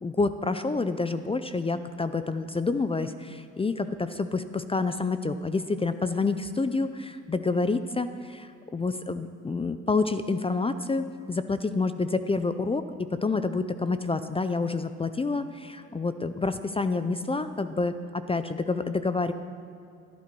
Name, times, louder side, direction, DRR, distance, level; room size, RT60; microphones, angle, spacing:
voice 1, 0.0-12.8 13.1-19.3, left 3 dB, 20° left, 11 dB, 0.5 m, -28 dB
15.5 x 11.5 x 4.6 m, 2.6 s
cardioid pair, 90°, 30 cm